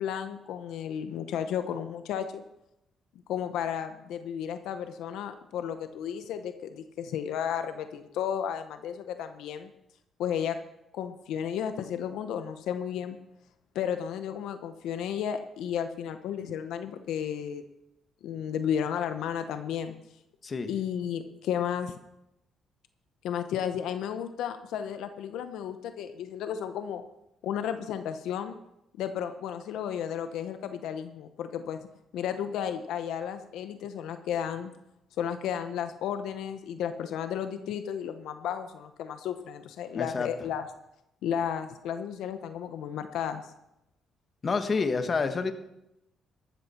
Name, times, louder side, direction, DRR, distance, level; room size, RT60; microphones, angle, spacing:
voice 1, 0.0-2.4 3.3-9.7 10.2-10.6 10.9-13.2 13.7-17.6 18.2-20.0 20.7-21.9 23.2-27.0 27.4-28.6 29.0-31.8 32.1-34.7 35.2-40.7 41.2-43.5, left 8 dB, 85° left, 9 dB, 0.8 m, -33 dB
voice 2, 39.9-40.3 44.4-45.5, left 4 dB, 40° left, 8 dB, 1.4 m, -28 dB
14.0 x 12.5 x 4.4 m, 0.86 s
cardioid pair, 90°, 0 cm